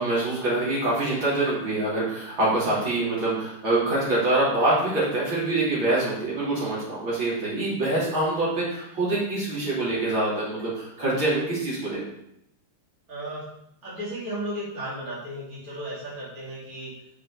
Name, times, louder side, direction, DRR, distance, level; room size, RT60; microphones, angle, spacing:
voice 1, 0.0-12.0, right 2 dB, 60° right, -8 dB, 3.9 m, -25 dB
voice 2, 13.1-13.5 13.8-16.9, right 1 dB, 40° right, -8 dB, 3.3 m, -35 dB
7.7 x 6.5 x 4.9 m, 0.78 s
omnidirectional pair, 2.4 m